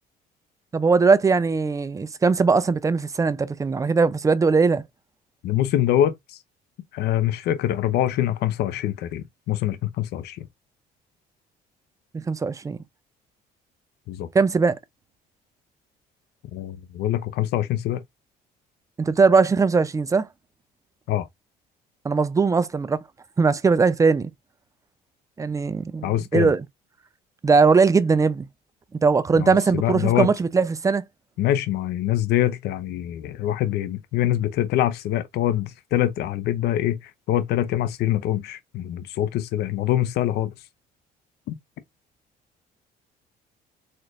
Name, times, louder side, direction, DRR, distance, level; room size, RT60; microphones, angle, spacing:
voice 1, 0.7-4.8 12.1-12.8 14.3-14.8 19.0-20.3 22.0-23.0 23.4-24.3 25.4-26.6 27.4-28.5 28.9-31.0, right 4 dB, 20° right, 0.4 m, -20 dB
voice 2, 5.4-6.4 6.9-10.5 14.1-14.3 16.5-18.0 21.1-21.3 26.0-26.5 29.3-30.3 31.4-40.5 41.5-41.6, left 12 dB, 75° left, 0.6 m, -24 dB
4.3 x 3.0 x 2.4 m
cardioid pair, 110°, 17 cm